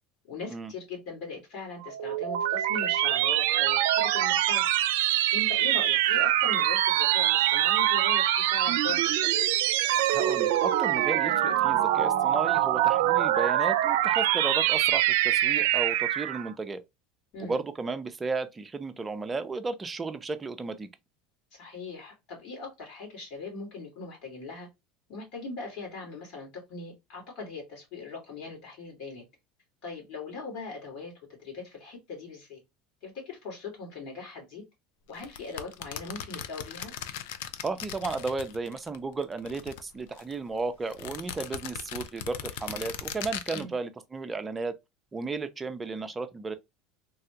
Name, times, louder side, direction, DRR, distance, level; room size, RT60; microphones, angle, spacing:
voice 1, 0.3-4.7 5.3-9.5 17.3-17.6 21.5-24.7 25.1-29.2 29.8-31.1 31.4-32.6 33.0-34.6 35.1-36.9 43.5-43.7, left 3 dB, 60° left, 2.1 m, -40 dB
sound 1, 1.8-16.5, right 13 dB, 85° right, 0.4 m, -24 dB
voice 2, 10.1-16.8 17.4-20.9 37.6-44.7 45.1-46.5, right 3 dB, 15° right, 0.4 m, -34 dB
sound 2, 35.2-39.0 39.2-40.3 40.9-43.6, left 9 dB, 80° left, 0.4 m, -39 dB
3.3 x 2.3 x 2.8 m
supercardioid pair, 135°, 0 cm